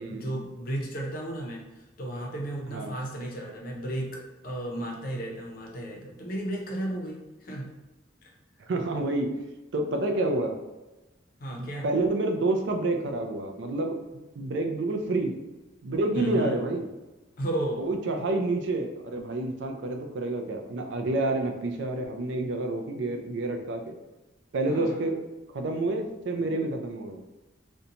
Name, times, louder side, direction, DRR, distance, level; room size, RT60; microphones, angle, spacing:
voice 1, 0.0-7.7 11.4-11.9 16.1-16.6 17.4-17.9 24.6-25.1, right 1 dB, 50° left, -1 dB, 0.6 m, -34 dB
voice 2, 8.7-9.4 9.7-10.5 11.6-14.0 14.4-15.3 15.8-16.8 17.8-23.9 24.5-25.2 25.5-27.2, right 2 dB, 70° right, 4 dB, 0.4 m, -28 dB
2.6 x 2.2 x 2.8 m, 1.1 s
head